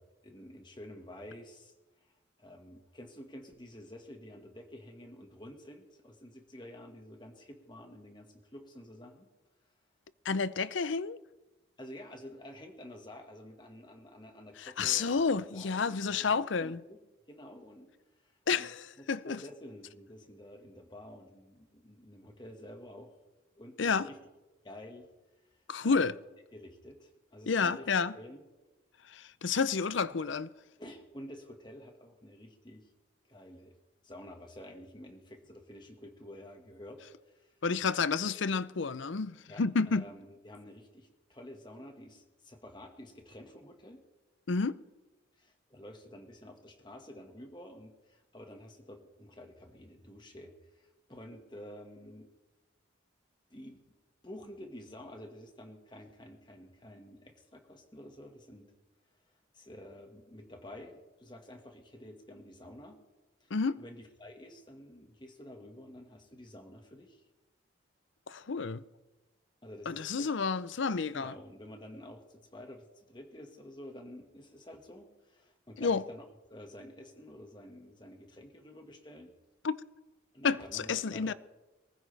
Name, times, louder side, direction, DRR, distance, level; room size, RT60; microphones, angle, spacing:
voice 1, 0.2-2.1 2.4-9.3 11.8-16.3 16.6-17.0 17.3-17.9 18.2-18.7 19.0-23.2 23.6-24.2 24.6-25.1 25.8-26.1 26.5-28.4 30.1-30.2 30.8-32.9 33.3-33.7 34.0-37.6 39.5-44.0 45.4-52.3 53.5-53.9 54.2-58.7 59.5-63.0 63.4-67.3 69.6-70.3 71.1-79.3 80.3-81.3, left 1 dB, 25° left, 1.7 m, -50 dB
voice 2, 10.2-11.2 14.6-16.8 18.5-19.4 23.8-24.1 25.7-26.1 27.5-28.1 29.1-30.5 37.6-40.0 44.5-44.8 63.5-63.8 68.3-68.8 69.9-71.3 75.8-76.0 79.6-79.8 80.4-81.3, left 5 dB, 70° left, 0.6 m, -30 dB
23.0 x 15.0 x 3.4 m
head